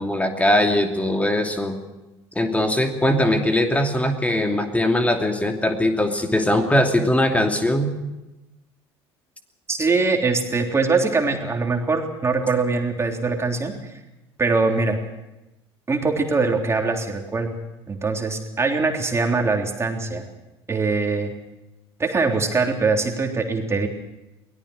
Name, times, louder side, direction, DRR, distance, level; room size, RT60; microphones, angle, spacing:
voice 1, 0.0-1.8 2.3-7.9, left 1 dB, 10° left, 4 dB, 2.8 m, -21 dB
voice 2, 9.7-13.9 14.4-15.0 15.9-17.6 17.9-20.3 20.7-21.3 22.0-23.9, right 4 dB, 20° right, 3 dB, 3.5 m, -22 dB
23.0 x 18.5 x 6.4 m, 0.99 s
figure-of-eight pair, 65°, 14 cm